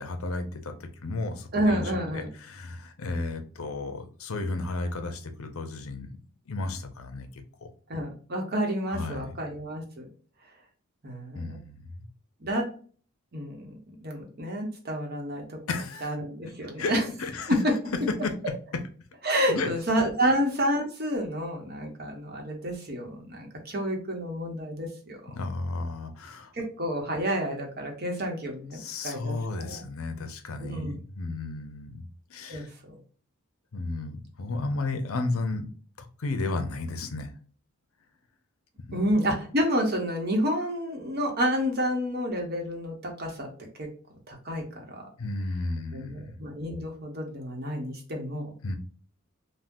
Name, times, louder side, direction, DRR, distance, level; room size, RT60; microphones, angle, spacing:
voice 1, 0.0-6.1 6.5-7.3 7.6-7.7 8.9-9.3 11.3-12.1 15.7-16.1 16.4-16.9 17.2-17.6 18.2-18.3 19.5-19.7 20.2-20.3 25.3-26.5 28.7-32.7 33.7-35.7 36.0-37.3 38.9-39.1 45.2-46.4 48.6-48.7, left 3 dB, 75° left, 7 dB, 0.6 m, -33 dB
voice 2, 1.5-2.3 7.9-10.0 11.0-11.6 12.4-12.7 13.3-15.6 16.0-17.0 19.2-25.5 26.5-29.8 30.6-31.0 32.5-32.9 38.9-43.5 43.8-43.9 44.3-45.0 45.9-48.5, equal, 45° right, 2 dB, 0.9 m, -30 dB
3.6 x 2.2 x 2.6 m, 0.42 s
head